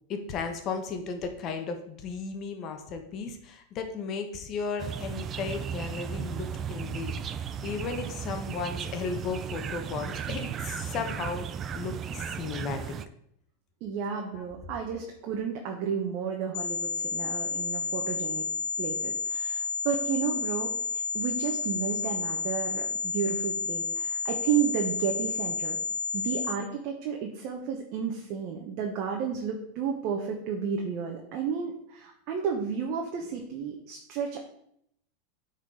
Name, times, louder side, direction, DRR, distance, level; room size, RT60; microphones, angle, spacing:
voice 1, 0.1-11.5 11.7-12.8 14.3-14.4, left 5 dB, 40° left, 6 dB, 1.3 m, -35 dB
sound 1, 4.8-13.1, right 7 dB, 30° right, 0.5 m, -35 dB
voice 2, 13.8-18.5 18.8-25.8 26.1-34.4, right 7 dB, 45° right, 1 dB, 1.2 m, -32 dB
sound 2, 16.5-26.5, left 4 dB, 60° left, 1.5 m, -31 dB
9.4 x 4.4 x 4.9 m, 0.72 s
supercardioid pair, 135°, 0 cm